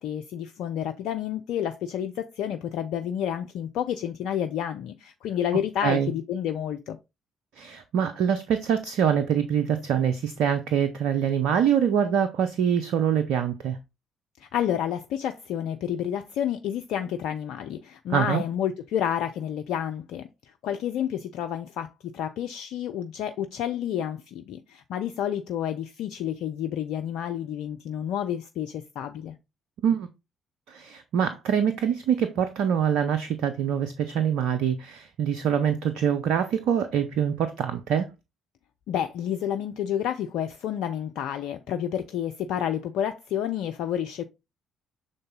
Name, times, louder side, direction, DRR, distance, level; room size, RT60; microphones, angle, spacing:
voice 1, 0.0-7.0 14.4-20.3 20.6-29.4 38.9-44.2, left 10 dB, 65° left, 0.5 m, -30 dB
voice 2, 7.6-13.8 18.1-18.4 29.8-30.1 30.7-38.1, right 8 dB, 65° right, 0.6 m, -24 dB
6.7 x 3.9 x 3.7 m
figure-of-eight pair, 45°, 0 cm